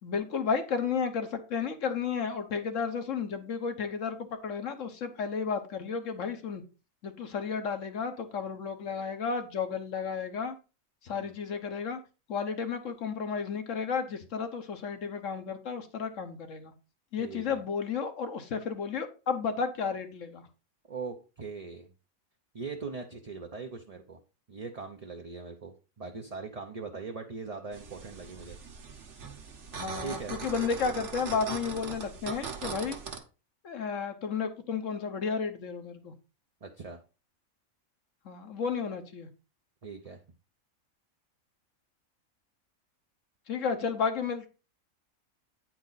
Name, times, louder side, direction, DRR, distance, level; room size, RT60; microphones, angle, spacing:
voice 1, 0.0-6.6 7.0-10.6 11.0-12.0 12.3-16.7 17.1-20.5 29.7-33.0 33.6-36.1 38.2-39.3 43.5-44.5, left 6 dB, 65° left, 7 dB, 1.4 m, -32 dB
voice 2, 17.2-17.6 20.9-21.9 22.5-24.2 24.5-28.6 30.0-30.3 36.6-37.0 39.8-40.2, right 4 dB, 35° right, 3 dB, 0.7 m, -40 dB
sound 1, 27.7-33.2, right 5 dB, 60° right, 1.5 m, -40 dB
9.4 x 4.5 x 4.0 m, 0.32 s
omnidirectional pair, 1.4 m